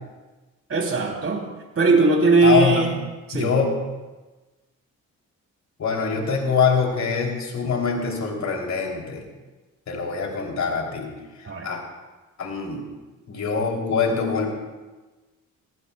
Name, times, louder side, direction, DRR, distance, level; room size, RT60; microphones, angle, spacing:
voice 1, 0.7-1.4 1.7-2.9 3.3-3.5 11.4-11.7, right 3 dB, 45° right, 1 dB, 3.1 m, -19 dB
voice 2, 2.4-2.9 3.3-3.8 5.8-9.2 9.9-11.1 11.4-11.8 12.4-12.9 13.3-14.5, left 5 dB, 60° left, 0 dB, 3.2 m, -24 dB
21.5 x 16.0 x 2.3 m, 1.2 s
cardioid pair, 70°, 32 cm